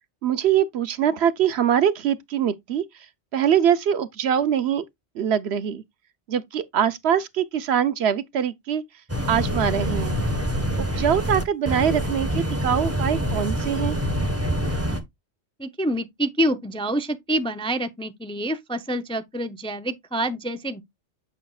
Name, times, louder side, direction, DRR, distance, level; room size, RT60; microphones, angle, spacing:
voice 1, 0.2-3.1 3.3-4.8 5.1-5.8 6.3-8.8 9.3-10.2 10.8-14.0, right 9 dB, 65° right, 0.9 m, -23 dB
sound 1, 9.1-15.0, equal, 15° right, 1.2 m, -26 dB
voice 2, 15.6-20.8, right 1 dB, 5° left, 0.4 m, -27 dB
8.5 x 6.5 x 2.3 m
omnidirectional pair, 1.2 m